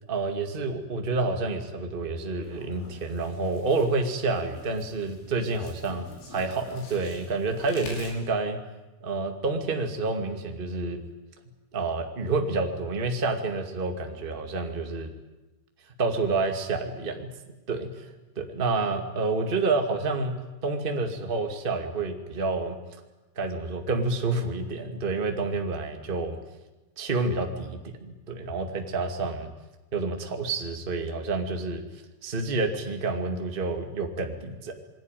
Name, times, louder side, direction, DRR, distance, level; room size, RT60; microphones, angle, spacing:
voice 1, 0.1-6.0 6.3-8.6 9.0-11.0 11.7-15.1 16.0-17.3 17.7-18.1 18.3-20.3 20.6-22.8 23.3-26.4 27.0-29.5 29.9-31.8 32.2-34.7, right 3 dB, 65° right, 4 dB, 0.5 m, -29 dB
sound 1, 2.4-8.1, left 2 dB, 90° left, 8.2 m, -47 dB
27.5 x 21.5 x 9.2 m, 1.1 s
omnidirectional pair, 5.5 m